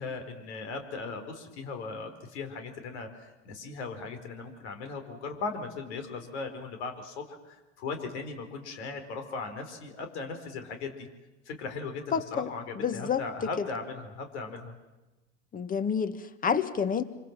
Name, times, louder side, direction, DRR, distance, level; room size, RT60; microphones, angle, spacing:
voice 1, 0.0-11.1 11.4-14.7, left 4 dB, 70° left, 6 dB, 4.7 m, -38 dB
voice 2, 12.1-12.5 12.8-13.5 15.5-17.0, left 7 dB, 25° left, 13 dB, 1.7 m, -29 dB
26.5 x 25.0 x 7.6 m, 1.1 s
hypercardioid pair, 105°, 35 cm